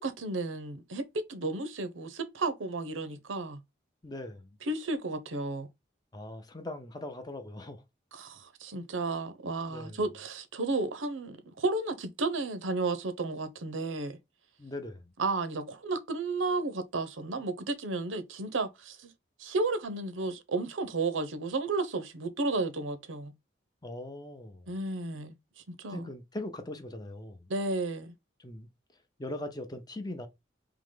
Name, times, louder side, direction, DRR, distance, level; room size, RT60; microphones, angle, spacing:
voice 1, 0.0-3.6 4.6-5.7 8.1-14.2 15.2-19.1 19.4-23.3 24.7-25.3 25.7-26.1 27.5-28.1, right 3 dB, 85° right, 0.7 m, -33 dB
voice 2, 4.0-4.5 6.1-7.8 9.7-10.0 14.6-15.1 23.8-24.7 25.9-27.5 28.4-28.7 29.2-30.3, left 1 dB, 20° left, 0.6 m, -40 dB
3.7 x 3.0 x 3.7 m
head